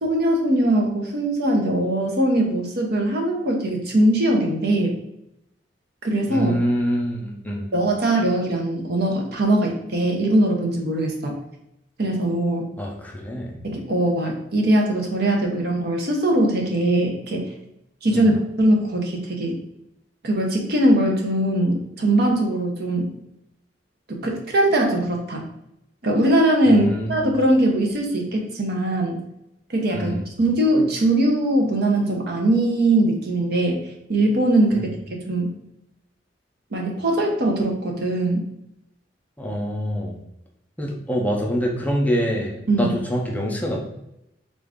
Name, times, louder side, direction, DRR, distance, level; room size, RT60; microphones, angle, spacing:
voice 1, 0.0-4.9 6.0-6.6 7.7-11.4 12.0-12.7 13.6-17.5 18.0-18.3 18.6-19.6 20.2-23.1 24.1-25.4 26.0-29.2 29.7-33.8 34.1-34.9 35.3-35.5 36.7-38.5 42.7-42.9, right 1 dB, 60° right, 1 dB, 0.8 m, -21 dB
voice 2, 6.3-7.7 12.8-13.6 18.1-18.3 26.7-27.3 29.9-30.2 34.7-34.9 39.4-40.2 40.8-43.8, equal, 10° left, -1 dB, 0.5 m, -25 dB
3.7 x 2.4 x 3.5 m, 0.82 s
head